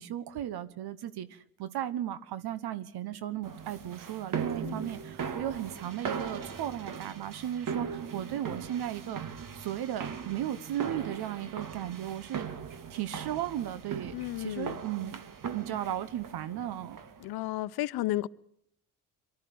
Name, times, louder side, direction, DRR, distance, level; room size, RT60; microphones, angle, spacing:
voice 1, 0.0-9.2 9.5-12.5 12.9-15.2 15.5-17.0, right 11 dB, 65° right, 1.2 m, -36 dB
sound 1, 3.4-17.3, right 6 dB, 50° right, 1.9 m, -39 dB
voice 2, 14.1-14.8 17.2-18.3, left 16 dB, 65° left, 0.8 m, -33 dB
23.5 x 12.5 x 9.4 m
hypercardioid pair, 50°, 41 cm